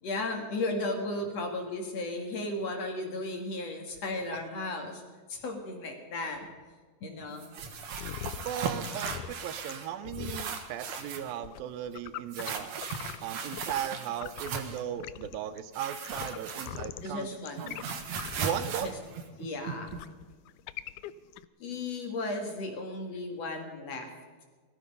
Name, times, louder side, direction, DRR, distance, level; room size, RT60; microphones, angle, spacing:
voice 1, 0.0-5.0 5.3-6.5 7.0-7.5 16.4-16.5 17.0-17.8 18.3-18.5 18.8-18.9 19.4-20.0 21.6-24.1, left 2 dB, 50° left, 3 dB, 2.5 m, -35 dB
sound 1, 7.4-9.9 10.1-11.3 12.3-14.8 15.7-17.0 17.3-20.0, right 6 dB, 55° right, 2.3 m, -37 dB
sound 2, 7.8-13.9 14.1-21.5, left 12 dB, 90° left, 1.8 m, -43 dB
voice 2, 8.5-12.8 13.2-17.3 17.6-17.8 18.4-18.9, right 10 dB, 80° right, 13 dB, 2.4 m, -37 dB
18.0 x 13.5 x 5.4 m, 1.5 s
omnidirectional pair, 4.3 m